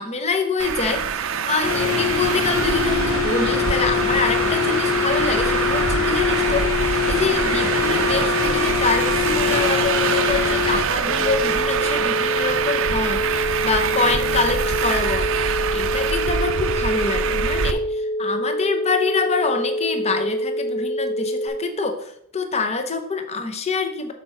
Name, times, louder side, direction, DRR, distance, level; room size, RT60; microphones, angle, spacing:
voice 1, 0.0-24.1, left 4 dB, 30° left, 6 dB, 0.7 m, -26 dB
Traffic noise roadway noise, 0.6-17.7, right 7 dB, 60° right, 0.5 m, -24 dB
sound 1, 1.6-10.8, left 7 dB, 65° left, 0.9 m, -23 dB
sound 2, 11.1-21.5, equal, 45° left, 1.3 m, -26 dB
6.6 x 4.3 x 5.4 m, 0.71 s
head